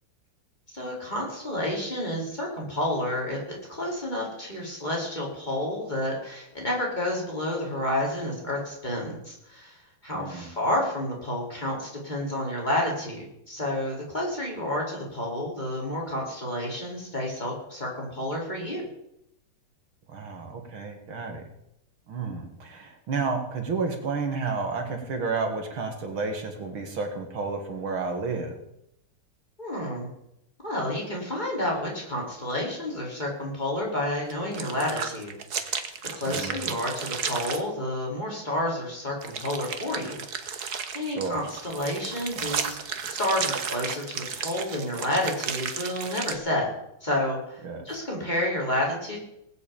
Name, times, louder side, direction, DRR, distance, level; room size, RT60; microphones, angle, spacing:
voice 1, 0.7-3.4 3.7-18.8 29.6-30.1 30.6-35.8 36.1-40.6 40.9-42.8 43.2-46.7 47.0-49.2, left 1 dB, 20° left, -3 dB, 5.2 m, -30 dB
voice 2, 10.1-10.5 20.1-21.4 22.1-28.6 36.3-36.6 41.0-41.4 47.6-47.9, right 4 dB, 70° right, 5 dB, 2.7 m, -31 dB
sound 1, 34.3-37.6 39.2-46.3, right 6 dB, 50° right, 1.7 m, -33 dB
19.5 x 8.1 x 8.8 m, 0.80 s
omnidirectional pair, 2.3 m